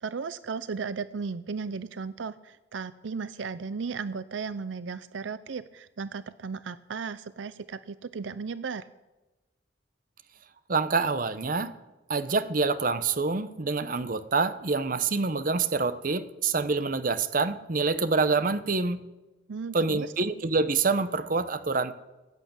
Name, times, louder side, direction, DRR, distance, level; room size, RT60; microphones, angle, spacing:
voice 1, 0.0-8.9 19.5-20.1, right 5 dB, 85° right, 15 dB, 0.5 m, -35 dB
voice 2, 10.7-11.8 12.1-19.0 19.7-21.9, right 4 dB, 45° right, 13 dB, 0.8 m, -26 dB
16.0 x 8.4 x 8.8 m, 1.1 s
head